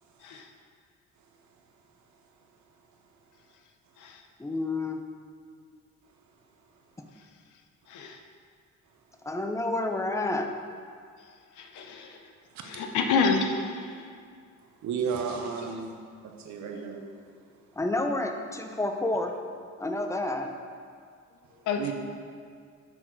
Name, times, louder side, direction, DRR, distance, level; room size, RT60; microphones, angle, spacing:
voice 1, 4.4-5.0 9.2-10.5 17.8-19.3 19.8-20.5, left 2 dB, 10° left, 5 dB, 0.5 m, -29 dB
voice 2, 11.6-12.2 12.7-13.9 21.7-21.9, left 4 dB, 80° left, 4 dB, 0.7 m, -28 dB
voice 3, 12.5-12.8 14.8-15.9 16.2-17.0 21.8-21.9, right 6 dB, 70° right, 4 dB, 0.7 m, -33 dB
6.2 x 3.8 x 4.5 m, 2.2 s
cardioid pair, 90°, 30 cm